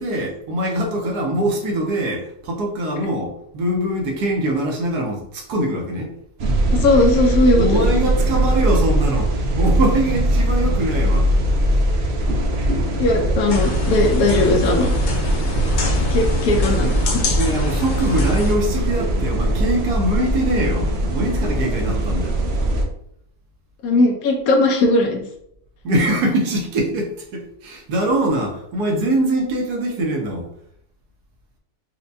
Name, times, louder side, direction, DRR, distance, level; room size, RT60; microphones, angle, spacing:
voice 1, 0.0-6.1 7.5-11.3 17.4-22.4 25.8-30.5, right 1 dB, 80° right, 1 dB, 1.3 m, -23 dB
sound 1, 6.4-22.9, right 1 dB, 65° right, 0.6 m, -21 dB
voice 2, 6.7-8.1 13.0-14.9 16.1-17.2 23.8-25.2, left 2 dB, 70° left, 2 dB, 1.1 m, -18 dB
sound 2, 13.5-18.6, left 1 dB, 90° left, 0.4 m, -24 dB
4.4 x 2.2 x 2.6 m, 0.71 s
omnidirectional pair, 1.6 m